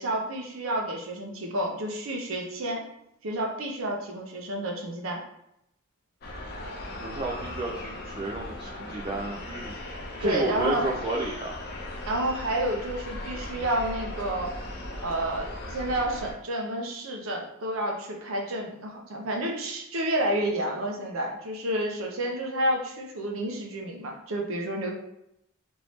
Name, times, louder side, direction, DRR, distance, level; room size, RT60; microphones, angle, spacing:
voice 1, 0.0-2.8 3.2-5.2 10.2-10.9 12.1-14.6 15.0-24.9, right 1 dB, 75° right, 1 dB, 0.7 m, -30 dB
sound 1, 6.2-16.3, left 1 dB, 50° left, 0.6 m, -38 dB
voice 2, 7.0-9.8 10.2-11.5, right 2 dB, 25° right, -2 dB, 0.3 m, -31 dB
3.0 x 2.7 x 3.1 m, 0.81 s
head